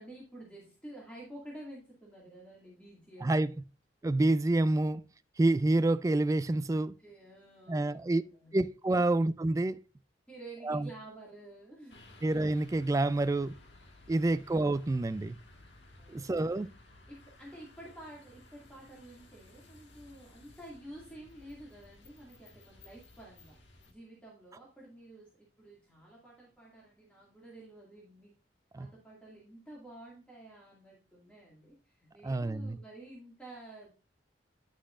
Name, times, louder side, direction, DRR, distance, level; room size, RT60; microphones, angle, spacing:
voice 1, 0.0-3.5 7.0-8.6 8.9-9.0 10.3-12.2 16.0-16.5 17.1-23.6 23.9-28.3 28.8-33.9, right 1 dB, 5° left, 2.1 m, -51 dB
voice 2, 3.2-3.5 4.0-5.0 5.4-6.9 7.7-8.2 8.5-9.8 10.7-10.9 12.2-13.5 14.1-15.4 16.1-16.7 28.7-28.9 32.2-32.8, right 2 dB, 20° right, 0.3 m, -28 dB
sound 1, 11.9-23.9, left 2 dB, 75° left, 1.6 m, -57 dB
9.9 x 6.2 x 2.4 m
head